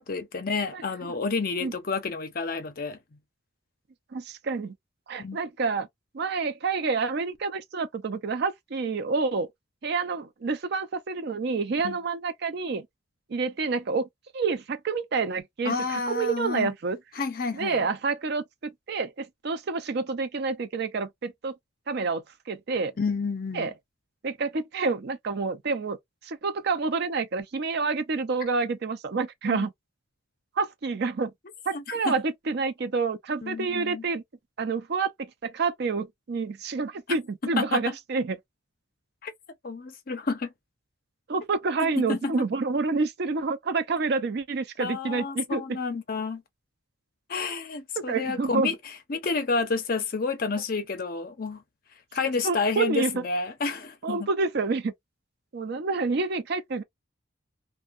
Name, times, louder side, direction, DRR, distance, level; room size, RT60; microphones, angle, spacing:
voice 1, 0.0-3.0 5.2-5.4 11.8-12.0 15.6-16.7 17.2-17.9 23.0-23.7 29.5-29.6 31.7-32.1 33.4-34.0 37.6-37.9 39.2-39.3 39.6-40.5 41.8-42.3 44.8-46.4 47.3-48.8 49.1-51.6 52.1-54.3, left 4 dB, 45° left, 0.5 m, -30 dB
voice 2, 4.1-4.7 5.1-5.9 6.1-9.5 9.8-12.9 13.3-14.1 14.3-17.0 17.5-21.5 21.9-22.9 23.5-23.7 24.2-26.0 26.2-29.7 30.6-31.3 31.7-34.2 34.6-38.4 41.3-45.8 48.0-48.8 52.4-53.2 54.0-54.9 55.5-56.8, right 4 dB, 50° right, 0.4 m, -28 dB
2.6 x 2.1 x 2.4 m
head